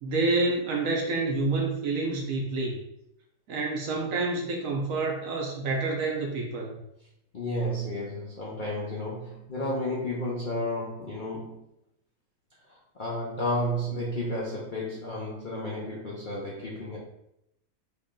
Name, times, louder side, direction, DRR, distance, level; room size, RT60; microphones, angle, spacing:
voice 1, 0.0-2.8 3.5-6.8, right 3 dB, 65° right, -1 dB, 0.9 m, -28 dB
voice 2, 7.3-11.6 12.7-17.0, left 1 dB, 80° left, -5 dB, 0.4 m, -32 dB
3.0 x 2.9 x 3.6 m, 0.81 s
omnidirectional pair, 1.8 m